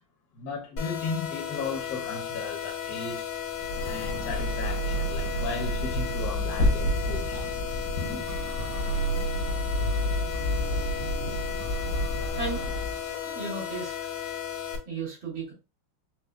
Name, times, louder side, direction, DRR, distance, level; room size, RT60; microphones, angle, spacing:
voice 1, 0.3-3.2 3.8-7.4 8.0-8.3, left 4 dB, 65° left, 1.0 m, -35 dB
sound 1, 0.8-14.8, left 9 dB, 85° left, 1.6 m, -35 dB
sound 2, 3.5-13.1, equal, 80° right, 1.7 m, -30 dB
sound 3, 5.9-6.0 6.5-13.7, right 3 dB, 35° right, 1.3 m, -45 dB
voice 2, 10.5-11.3 12.4-12.7 13.2-13.9 14.9-15.5, right 3 dB, 60° right, 2.3 m, -36 dB
4.4 x 2.2 x 2.2 m
omnidirectional pair, 2.4 m